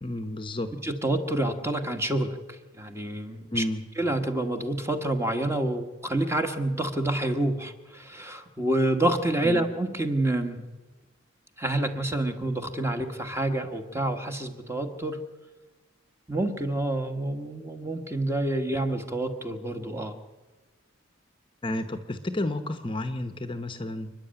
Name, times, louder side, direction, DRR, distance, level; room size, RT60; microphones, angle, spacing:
voice 1, 0.0-0.7 3.5-3.8 9.4-9.7 21.6-24.1, left 1 dB, 25° left, 9 dB, 0.9 m, -31 dB
voice 2, 0.8-3.6 4.0-10.7 11.6-15.2 16.3-20.2, right 1 dB, 15° right, 6 dB, 1.4 m, -28 dB
28.5 x 10.5 x 9.0 m, 1.2 s
head